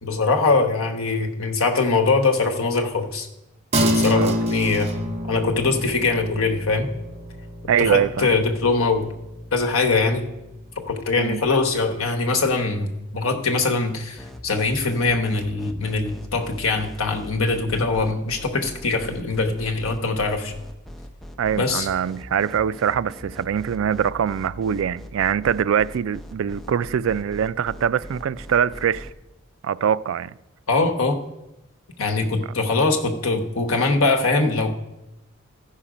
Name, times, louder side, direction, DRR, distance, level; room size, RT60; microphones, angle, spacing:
voice 1, 0.0-3.3 3.9-4.9 5.3-6.9 7.8-9.1 9.5-10.3 10.8-20.5 21.5-21.9 30.7-31.2 32.0-34.7, left 3 dB, 85° left, 1.1 m, -22 dB
sound 1, 3.7-13.5, equal, 30° right, 1.0 m, -29 dB
voice 2, 7.7-8.3 11.2-11.4 21.4-29.1 29.6-30.3, right 8 dB, 75° right, 0.3 m, -23 dB
sound 2, 14.2-29.1, equal, ahead, 0.6 m, -40 dB
14.5 x 5.7 x 5.0 m
head